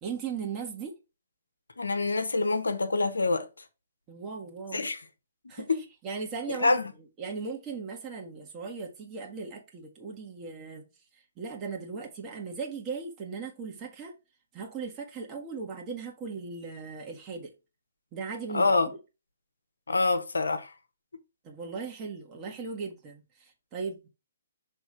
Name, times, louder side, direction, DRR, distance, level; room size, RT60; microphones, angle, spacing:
voice 1, 0.0-0.9 4.1-4.9 5.5-5.7 6.0-6.8 7.2-10.9 11.1-14.1 14.5-17.5 18.1-19.0 21.4-24.1, right 5 dB, 25° right, 1.6 m, -38 dB
voice 2, 1.8-3.5 4.7-5.0 5.6-5.8 6.6-6.9 18.5-18.9 19.9-20.7, left 3 dB, 80° left, 1.0 m, -26 dB
6.3 x 3.5 x 4.7 m
figure-of-eight pair, 130°, 0 cm